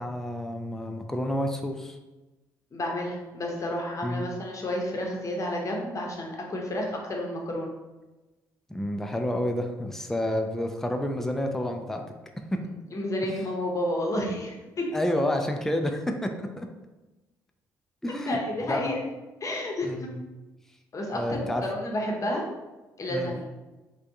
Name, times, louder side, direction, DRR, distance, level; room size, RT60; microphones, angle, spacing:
voice 1, 0.0-2.0 4.0-4.2 8.7-12.0 14.9-16.7 18.0-18.4 18.7-19.0 19.8-20.2 21.1-21.6 23.1-23.3, left 1 dB, 5° left, 4 dB, 0.3 m, -29 dB
voice 2, 2.7-7.7 12.9-15.0 18.3-19.1 19.4-20.1 20.9-22.5 23.0-23.5, left 1 dB, 35° left, 0 dB, 0.8 m, -31 dB
3.4 x 2.2 x 2.6 m, 1.1 s
figure-of-eight pair, 45°, 10 cm